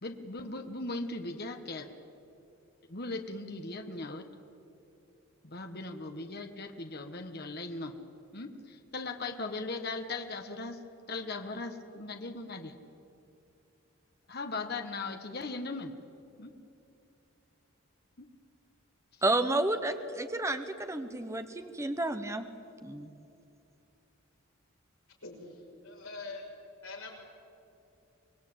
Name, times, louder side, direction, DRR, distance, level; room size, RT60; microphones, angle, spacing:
voice 1, 0.0-1.9 2.9-4.2 5.4-7.9 8.3-10.8 11.1-12.7 14.3-15.9 16.4-16.5 18.2-18.3, left 3 dB, 45° left, 6 dB, 1.3 m, -38 dB
voice 2, 19.2-22.5 22.8-23.1, right 2 dB, 15° right, 8 dB, 1.0 m, -31 dB
voice 3, 25.8-26.4 26.8-27.1, left 3 dB, 70° left, -1 dB, 6.0 m, -42 dB
25.0 x 21.5 x 8.7 m, 2.7 s
head